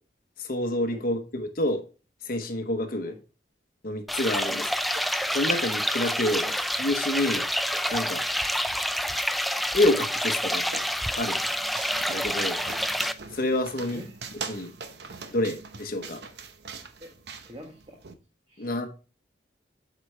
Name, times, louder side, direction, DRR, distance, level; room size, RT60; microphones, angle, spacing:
voice 1, 0.4-1.8 2.2-3.1 3.8-4.7 5.3-6.5 6.8-7.4 7.9-8.2 9.7-10.7 11.2-11.4 12.1-12.6 13.3-14.0 14.5-14.7 15.3-16.2 18.6-18.9, left 1 dB, 55° left, 5 dB, 1.0 m, -27 dB
sound 1, 4.1-13.1, equal, ahead, 0.3 m, -28 dB
sound 2, 10.0-18.1, right 5 dB, 65° right, 0.8 m, -42 dB
voice 2, 13.8-14.2 17.0-17.1 17.4-18.0 18.5-18.9, equal, 30° right, 1 dB, 1.2 m, -44 dB
8.2 x 5.0 x 3.2 m, 0.33 s
head